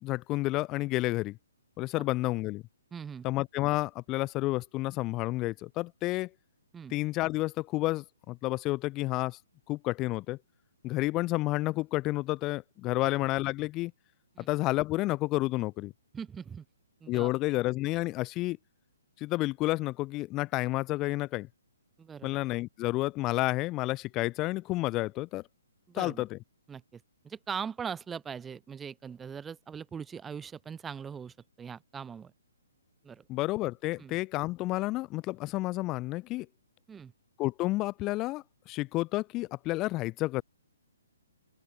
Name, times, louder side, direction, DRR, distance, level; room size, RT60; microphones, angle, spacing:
voice 1, 0.0-1.4 1.8-2.6 3.2-6.3 6.9-9.4 9.7-10.4 10.8-13.9 14.4-15.9 17.1-18.6 19.2-21.5 22.2-25.4 25.9-26.4 33.3-36.5 37.4-40.4, left 19 dB, 25° left, 0.4 m, -30 dB
voice 2, 2.9-3.3 6.7-6.9 13.0-13.1 14.3-14.5 16.1-16.6 17.0-17.3 22.0-22.4 25.9-26.3 26.7-32.3 33.0-33.3 34.0-34.2 36.9-37.1, right 7 dB, 10° right, 1.0 m, -41 dB
open air
figure-of-eight pair, 130°, 0 cm